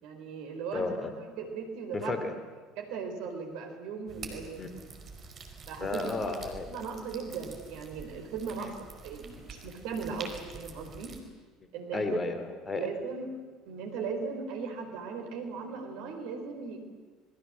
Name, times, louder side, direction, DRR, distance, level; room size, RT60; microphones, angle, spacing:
voice 1, 0.0-2.3 2.8-4.8 5.7-6.2 6.7-11.1 11.7-12.2 12.7-13.3 13.7-16.9, right 5 dB, 65° right, 5 dB, 4.4 m, -38 dB
voice 2, 0.7-1.1 1.9-2.3 4.6-4.7 5.8-6.7 8.6-8.7 10.1-10.2 11.9-12.9, left 3 dB, 25° left, 8 dB, 3.8 m, -33 dB
sound 1, 4.1-11.2, right 4 dB, 40° right, 4.8 m, -47 dB
28.0 x 21.5 x 7.7 m, 1.4 s
hypercardioid pair, 65°, 0 cm